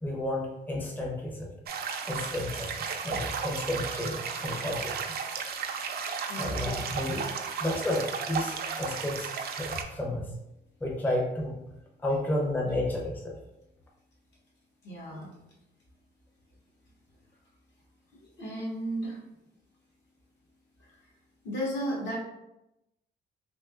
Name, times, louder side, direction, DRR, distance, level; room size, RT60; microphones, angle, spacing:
voice 1, 0.0-1.5 2.0-5.0 6.4-7.3 7.6-10.3 10.8-11.6 12.0-13.4, left 1 dB, 10° left, -2 dB, 0.6 m, -32 dB
sound 1, 1.7-9.8, right 6 dB, 50° right, 0.4 m, -34 dB
voice 2, 6.3-6.6 14.8-15.4 18.4-19.2 20.8-20.9 21.4-22.2, equal, 65° left, -3 dB, 1.3 m, -34 dB
3.5 x 2.7 x 2.4 m, 0.90 s
cardioid pair, 90°, 20 cm